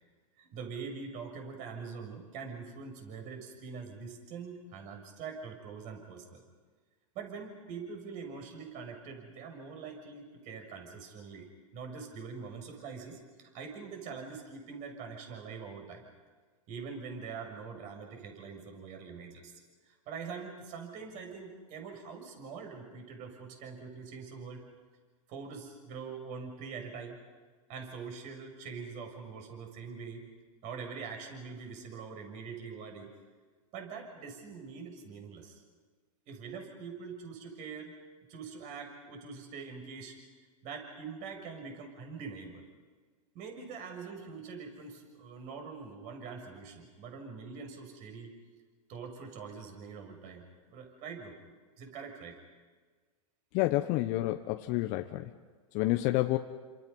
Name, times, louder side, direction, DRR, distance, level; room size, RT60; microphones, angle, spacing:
voice 1, 0.4-6.4 7.1-16.0 16.7-19.5 19.9-24.7 25.3-27.2 27.7-30.2 30.6-33.1 33.7-35.6 36.3-37.9 38.3-40.1 40.6-42.6 43.3-48.3 48.9-51.4 51.8-52.4, right 5 dB, 45° right, 3 dB, 6.6 m, -44 dB
voice 2, 53.5-55.3 55.7-56.4, left 17 dB, 45° left, 5 dB, 1.2 m, -29 dB
30.0 x 27.0 x 5.5 m, 1.4 s
hypercardioid pair, 115°, 18 cm